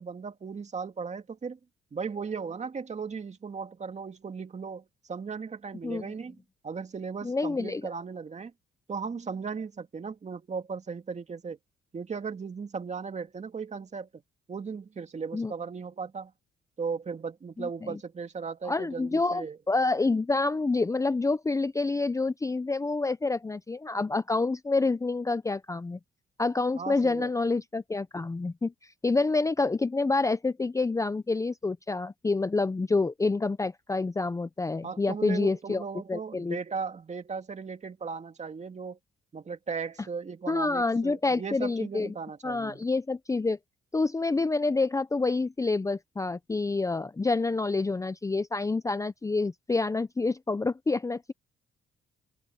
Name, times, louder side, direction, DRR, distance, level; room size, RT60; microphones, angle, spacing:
voice 1, 0.0-1.6 1.9-6.4 6.6-8.5 8.9-11.6 11.9-14.2 14.5-16.3 16.8-19.6 26.8-27.3 34.8-39.0 39.3-42.8, right 5 dB, 35° right, 2.1 m, -37 dB
voice 2, 7.2-7.8 15.3-15.5 17.6-18.0 18.6-26.0 26.4-28.7 29.0-35.8 36.1-36.6 40.5-42.1 42.4-43.6 43.9-51.3, left 3 dB, 15° left, 0.6 m, -28 dB
open air
cardioid pair, 90°, 20 cm